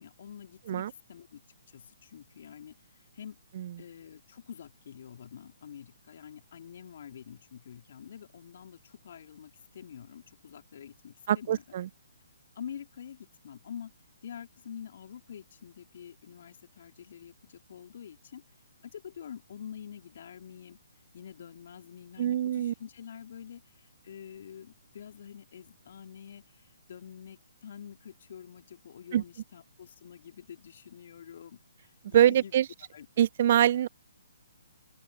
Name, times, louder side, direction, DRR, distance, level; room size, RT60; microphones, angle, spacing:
voice 1, 0.0-1.4 1.7-2.8 3.1-3.4 3.8-11.6 12.5-13.9 14.2-18.4 18.8-20.8 21.1-32.5 32.9-33.3, left 8 dB, 55° left, 2.9 m, -47 dB
voice 2, 11.3-11.9 22.2-22.7 29.1-29.2 32.1-32.6 33.2-33.9, right 11 dB, 45° right, 0.3 m, -24 dB
open air
figure-of-eight pair, 135°, 0 cm